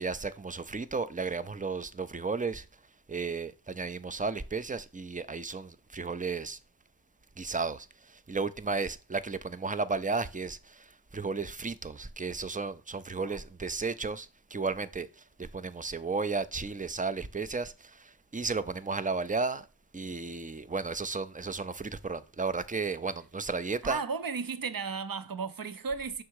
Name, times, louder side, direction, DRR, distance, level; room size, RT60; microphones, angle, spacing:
voice 1, 0.0-2.6 3.1-6.6 7.4-7.9 8.3-10.6 11.1-14.3 14.5-15.1 15.5-17.7 18.3-19.6 19.9-24.0, right 4 dB, 20° right, 0.5 m, -33 dB
voice 2, 23.8-26.2, right 5 dB, 50° right, 0.7 m, -35 dB
6.3 x 3.6 x 4.7 m
wide cardioid pair, 75°, 43 cm